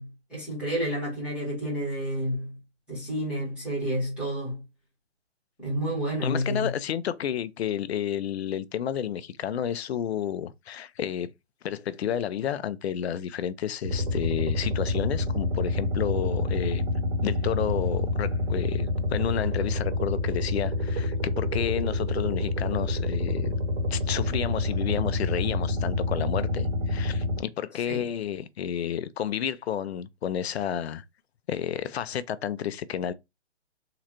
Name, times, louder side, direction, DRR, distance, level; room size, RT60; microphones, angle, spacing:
voice 1, 0.0-2.6 2.9-4.6 5.6-6.7 27.8-28.0, equal, 5° right, 0.9 m, -30 dB
voice 2, 6.2-11.3 11.6-16.8 17.2-23.6 23.9-31.0 31.5-33.1, left 9 dB, 60° left, 0.4 m, -31 dB
sound 1, 13.8-27.4, left 2 dB, 55° right, 1.0 m, -27 dB
3.8 x 2.2 x 2.8 m
hypercardioid pair, 165°, 36 cm